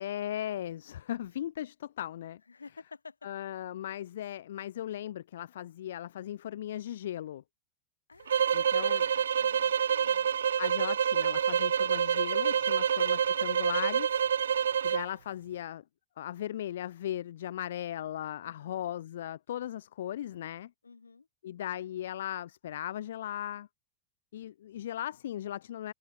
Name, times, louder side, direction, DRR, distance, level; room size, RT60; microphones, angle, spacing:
voice 1, 0.0-2.4 3.2-7.4 8.5-9.0 10.6-14.2 14.8-15.8 16.2-20.7 21.4-23.7 24.3-25.9, left 11 dB, 60° left, 1.4 m, -37 dB
voice 2, 2.5-3.3 8.1-10.3 11.8-13.4 18.4-18.9 20.8-21.3, left 4 dB, 75° left, 4.5 m, -52 dB
sound 1, 8.3-15.1, right 8 dB, 65° right, 0.5 m, -27 dB
figure-of-eight pair, 90°, 0 cm